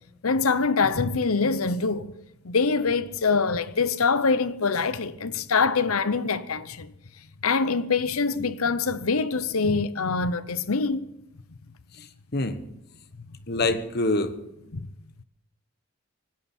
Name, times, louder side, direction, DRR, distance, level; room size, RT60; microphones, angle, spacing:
voice 1, 0.2-2.1 2.4-6.9 7.4-11.1 14.7-14.9, left 4 dB, 85° left, 0.8 m, -24 dB
voice 2, 13.5-14.3, left 2 dB, 45° left, 1.2 m, -25 dB
18.5 x 17.0 x 4.4 m
head